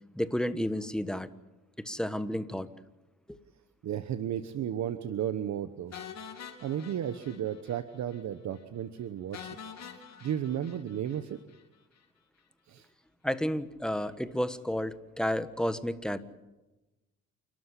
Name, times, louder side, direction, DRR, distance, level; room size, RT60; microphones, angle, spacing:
voice 1, 0.1-1.3 1.8-2.7 3.3-3.4 13.2-16.2, equal, ahead, 12 dB, 1.4 m, -31 dB
voice 2, 3.8-5.9 6.6-9.5 10.2-11.4 12.7-12.9, right 10 dB, 65° right, 11 dB, 1.2 m, -34 dB
sound 1, 5.9-7.8 8.1-8.2 8.6-8.7 9.3-11.6, left 7 dB, 60° left, 3.1 m, -46 dB
28.5 x 13.0 x 9.9 m, 1.1 s
cardioid pair, 90°, 30 cm